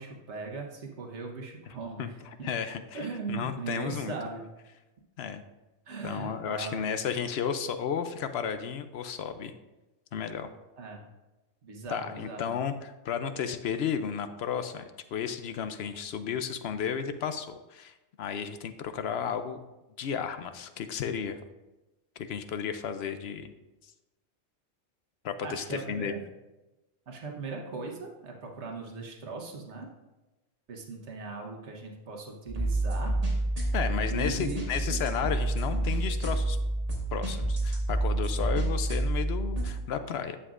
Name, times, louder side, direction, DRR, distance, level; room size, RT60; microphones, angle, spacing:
voice 1, 0.0-2.1 2.4-2.5 2.9-4.4 5.9-6.9 10.8-11.0 11.6-12.6 25.4-26.2 27.1-29.9 30.7-33.1 34.1-34.6, right 4 dB, 90° right, 1 dB, 1.4 m, -39 dB
voice 2, 2.0-3.0 3.3-4.1 5.2-5.4 6.0-9.5 10.1-10.5 11.9-14.8 15.1-19.6 20.0-21.4 22.2-23.5 25.2-26.2 33.7-36.6 37.1-40.4, left 7 dB, 70° left, 10 dB, 0.8 m, -33 dB
sound 1, 32.5-39.7, right 2 dB, 35° right, 2.0 m, -29 dB
11.0 x 7.4 x 2.5 m, 1.1 s
omnidirectional pair, 1.1 m